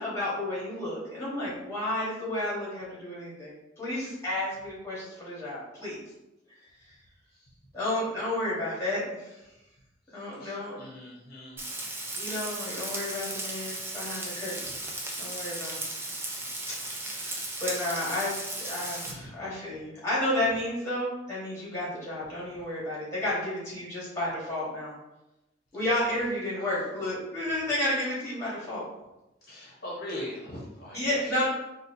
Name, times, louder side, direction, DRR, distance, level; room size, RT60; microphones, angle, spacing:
voice 1, 0.0-6.0 7.7-9.4 10.1-10.8 12.1-14.7 15.2-15.8 17.0-24.9 25.7-28.9 30.9-31.5, left 1 dB, 15° left, -7 dB, 1.2 m, -32 dB
voice 2, 10.1-11.6 14.6-14.8 16.3-16.4 19.0-19.3 20.4-20.5 25.9-26.2 26.5-26.9 29.5-31.5, left 1 dB, 50° left, -6 dB, 0.8 m, -42 dB
Frying (food), 11.6-19.1, right 2 dB, 10° right, 0.3 m, -36 dB
4.1 x 2.3 x 2.5 m, 0.97 s
head